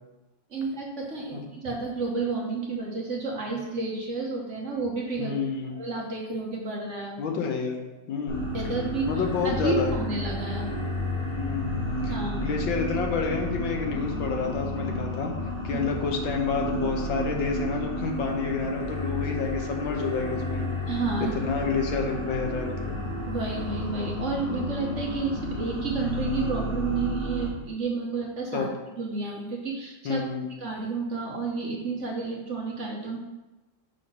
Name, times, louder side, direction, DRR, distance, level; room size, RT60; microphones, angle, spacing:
voice 1, 0.5-5.4 5.7-7.2 8.5-9.1 9.4-10.7 12.1-12.4 15.7-15.8 20.9-21.3 23.3-28.7 29.0-30.2 30.6-33.2, right 3 dB, 45° right, -1 dB, 1.1 m, -31 dB
voice 2, 5.2-5.7 7.2-7.8 8.1-8.4 9.1-9.9 11.4-11.8 12.0-15.3 15.6-20.7 21.2-23.0 28.5-28.7 30.0-30.5, left 5 dB, 85° left, 2 dB, 1.8 m, -29 dB
sound 1, 8.3-27.5, left 1 dB, 55° left, 2.2 m, -31 dB
6.4 x 4.2 x 5.5 m, 1.1 s
omnidirectional pair, 2.0 m